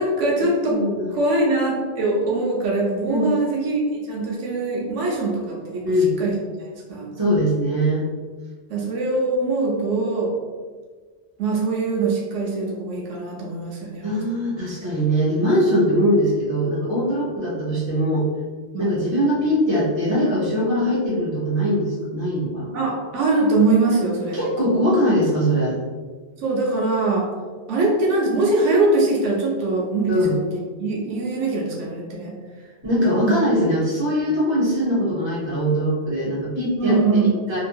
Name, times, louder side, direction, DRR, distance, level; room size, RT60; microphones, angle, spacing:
voice 1, 0.0-0.7 1.1-3.8 4.1-5.8 6.2-7.1 8.7-10.3 11.4-14.2 18.7-19.0 22.7-24.4 26.4-27.3 27.7-30.4 30.8-32.3 36.8-37.3, right 3 dB, 85° right, -3 dB, 1.0 m, -22 dB
voice 2, 0.7-1.1 3.1-3.3 5.8-6.1 7.2-8.0 14.0-18.3 18.8-22.7 24.3-25.8 30.1-30.4 32.8-37.2 37.5-37.6, equal, 25° right, -6 dB, 0.8 m, -21 dB
2.8 x 2.6 x 2.2 m, 1.5 s
omnidirectional pair, 1.2 m